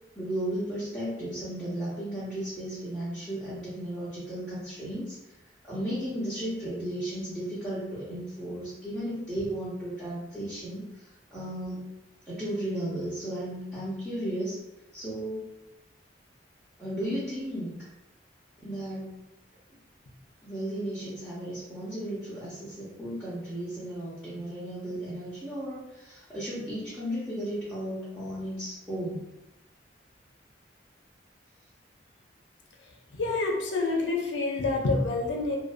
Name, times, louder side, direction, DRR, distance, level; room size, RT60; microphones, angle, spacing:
voice 1, 0.2-5.2 5.6-11.8 12.3-14.6 14.9-15.4 16.8-17.7 18.6-19.1 20.4-29.3, right 1 dB, ahead, -12 dB, 0.6 m, -34 dB
voice 2, 33.1-35.6, left 3 dB, 80° left, 0 dB, 0.4 m, -27 dB
2.5 x 2.1 x 2.4 m, 0.92 s
head